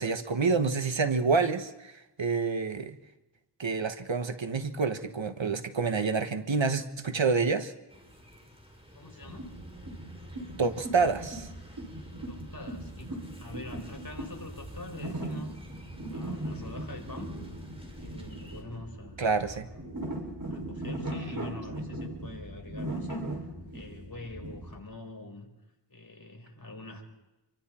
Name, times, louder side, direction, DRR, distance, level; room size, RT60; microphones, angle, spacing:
voice 1, 0.0-3.0 3.6-7.7 10.6-11.5 19.2-19.7, right 4 dB, 80° right, 8 dB, 1.5 m, -28 dB
sound 1, 7.9-18.6, equal, 10° right, 5.0 m, -51 dB
voice 2, 8.9-9.5 12.3-15.5 16.1-17.3 18.0-19.3 20.5-23.2 23.7-25.5 25.9-27.0, left 2 dB, 50° left, 2 dB, 4.5 m, -45 dB
sound 2, 9.2-24.7, right 1 dB, 50° right, 6.1 m, -39 dB
28.0 x 24.0 x 4.4 m, 1.0 s
wide cardioid pair, 65°, 45 cm